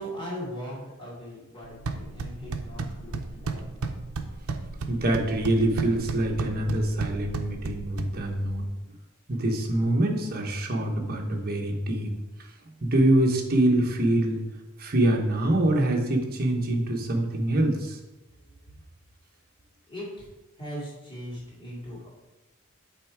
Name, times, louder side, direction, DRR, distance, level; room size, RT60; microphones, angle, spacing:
voice 1, 0.0-3.6 18.5-18.8 19.9-20.2 20.6-22.1, equal, 25° left, -6 dB, 2.5 m, -39 dB
sound 1, 1.6-8.6, right 3 dB, 80° right, 0.6 m, -34 dB
voice 2, 4.9-8.7 9.3-12.1 12.8-14.4 14.8-18.0, right 1 dB, 45° right, 1 dB, 1.1 m, -25 dB
8.2 x 3.7 x 4.7 m, 1.1 s
head